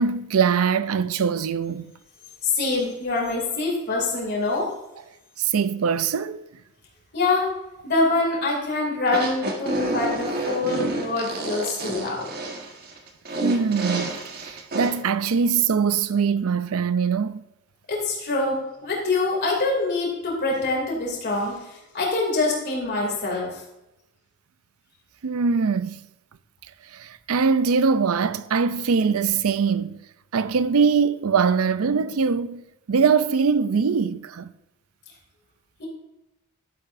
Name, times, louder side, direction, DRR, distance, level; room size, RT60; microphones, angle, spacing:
voice 1, 0.0-1.9 5.4-6.4 13.4-17.4 25.2-26.0 26.9-30.0 30.3-32.6 32.9-34.5, right 5 dB, 70° right, 0.5 m, -22 dB
voice 2, 2.4-4.7 7.1-7.5 7.8-12.3 17.9-23.6 35.8-35.9, left 3 dB, 50° left, 2.8 m, -25 dB
sound 1, 9.0-14.9, right 2 dB, 45° right, 1.5 m, -29 dB
11.5 x 9.2 x 2.6 m
head